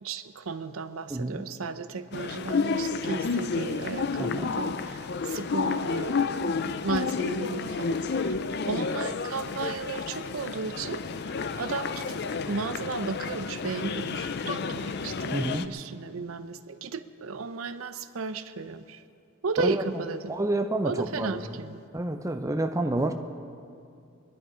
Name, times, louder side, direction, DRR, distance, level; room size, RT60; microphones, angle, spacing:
voice 1, 0.0-8.4 8.7-11.0 11.6-12.1 12.5-19.0 19.4-20.4 20.8-21.8, right 4 dB, 80° right, 11 dB, 0.6 m, -34 dB
voice 2, 1.1-1.5 4.2-4.5 15.3-15.7 19.6-19.8 20.3-21.6 21.9-23.1, right 1 dB, 15° right, 6 dB, 0.5 m, -29 dB
sound 1, 2.1-15.7, left 4 dB, 50° left, 0.5 m, -31 dB
22.5 x 11.0 x 5.0 m, 2.5 s
head